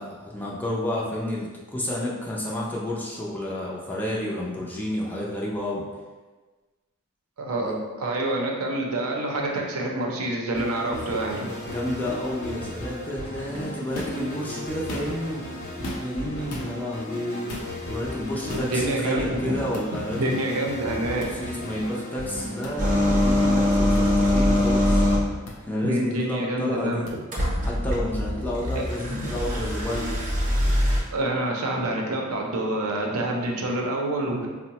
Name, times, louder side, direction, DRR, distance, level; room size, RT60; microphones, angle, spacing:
voice 1, 0.0-5.8 7.6-7.8 10.8-11.0 11.6-15.4 16.0-20.4 21.3-25.0 25.6-27.1 27.6-30.1, left 1 dB, 10° left, -4 dB, 0.4 m, -30 dB
voice 2, 7.4-11.5 18.5-19.5 20.1-21.2 25.8-27.1 31.1-34.5, right 1 dB, 80° right, 0 dB, 0.6 m, -27 dB
sound 1, 10.5-23.5, left 1 dB, 50° left, 0.9 m, -36 dB
sound 2, 13.9-14.2 14.8-15.3 15.8-16.2 16.5-16.7 17.5-17.7 18.5-18.7 19.7-19.9 21.2-21.4 22.6-22.8 23.9-24.0 25.5-25.6 27.1-27.2, left 1 dB, 90° left, 0.6 m, -36 dB
sound 3, 22.8-25.3 27.3-31.0, left 1 dB, 35° right, 0.7 m, -22 dB
3.7 x 2.0 x 2.8 m, 1.3 s
head